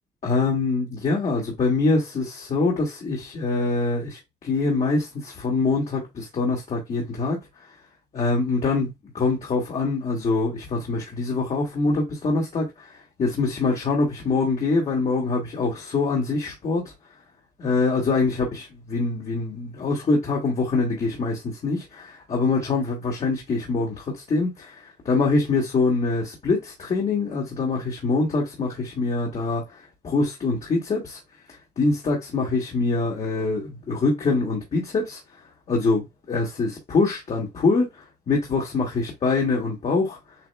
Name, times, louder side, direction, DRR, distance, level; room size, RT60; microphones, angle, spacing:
voice 1, 0.2-7.7 8.1-16.9 17.6-31.2 31.8-35.2 35.7-40.4, left 3 dB, 40° left, 1.8 m, -24 dB
7.5 x 3.0 x 2.3 m
cardioid pair, 110°, 17 cm